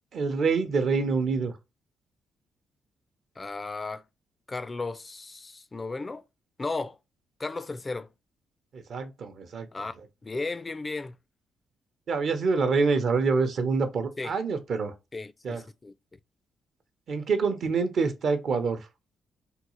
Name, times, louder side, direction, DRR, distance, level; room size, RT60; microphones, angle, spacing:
voice 1, 0.1-1.5 8.7-9.7 12.1-14.9 15.4-15.6 17.1-18.8, right 4 dB, 65° right, 0.7 m, -26 dB
voice 2, 3.4-4.0 4.5-6.2 6.6-7.0 7.4-8.1 9.7-10.0 10.2-11.2 14.2-14.4 15.1-15.9, left 3 dB, 30° left, 0.3 m, -35 dB
3.6 x 2.4 x 3.0 m
supercardioid pair, 60°, 0 cm